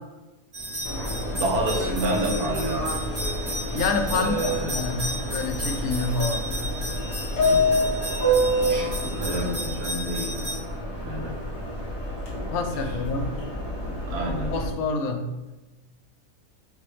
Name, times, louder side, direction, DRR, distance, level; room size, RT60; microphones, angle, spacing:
sound 1, 0.5-10.6, equal, 25° right, 0.8 m, -34 dB
Subway metro underground, 0.8-14.7, equal, 90° left, 1.4 m, -28 dB
voice 1, 1.3-2.9 4.1-4.8 7.6-7.8 8.6-10.4 11.0-11.3 14.1-14.5, right 1 dB, 70° right, -1 dB, 1.4 m, -29 dB
voice 2, 3.7-6.5 12.5-13.3 14.5-15.3, left 3 dB, 70° left, 5 dB, 1.0 m, -27 dB
6.5 x 2.2 x 3.2 m, 1.1 s
omnidirectional pair, 1.7 m